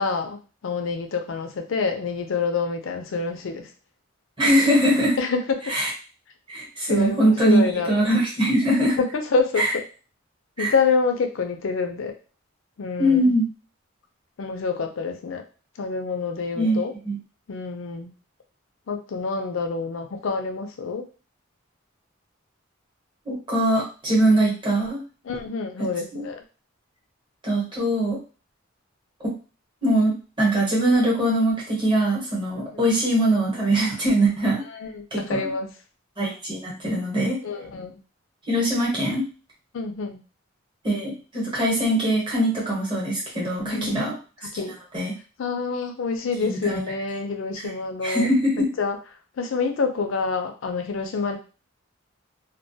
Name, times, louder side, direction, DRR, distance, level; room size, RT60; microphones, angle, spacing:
voice 1, 0.0-3.7 5.2-5.7 6.9-7.9 9.0-9.8 10.6-12.1 12.8-13.3 14.4-15.4 15.8-16.9 17.5-18.1 18.9-21.0 25.2-26.4 32.5-32.7 34.7-35.7 37.4-38.0 39.7-40.2 43.6-44.1 44.5-44.7 45.4-48.3 48.6-49.0 49.4-51.4, left 4 dB, 70° left, 5 dB, 0.4 m, -27 dB
voice 2, 4.4-5.2 5.7-5.9 6.5-9.0 9.6-9.7 10.6-10.7 13.0-13.5 16.5-17.2 23.3-25.0 25.8-26.2 27.4-28.2 29.2-29.3 29.8-34.6 35.1-35.4 36.2-37.4 38.5-39.2 40.8-44.2 44.5-44.6 44.9-45.1 46.4-46.8 48.0-48.7, right 1 dB, 25° right, -5 dB, 0.9 m, -22 dB
2.2 x 2.2 x 2.6 m, 0.35 s
head